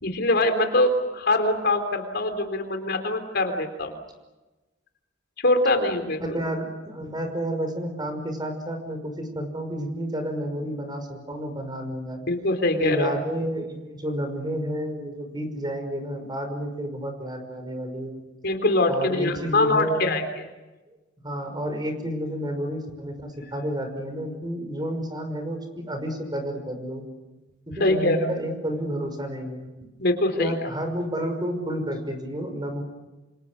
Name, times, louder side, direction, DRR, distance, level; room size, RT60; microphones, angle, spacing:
voice 1, 0.0-3.9 5.4-6.4 12.3-13.1 18.4-20.4 27.8-28.3 30.0-30.7, left 2 dB, 60° left, 6 dB, 3.6 m, -23 dB
voice 2, 6.2-12.2 12.8-18.2 18.9-20.1 20.9-21.0 21.2-27.0 27.7-29.7 30.3-32.8, equal, 20° right, 6 dB, 5.7 m, -30 dB
28.0 x 27.5 x 6.5 m, 1.1 s
head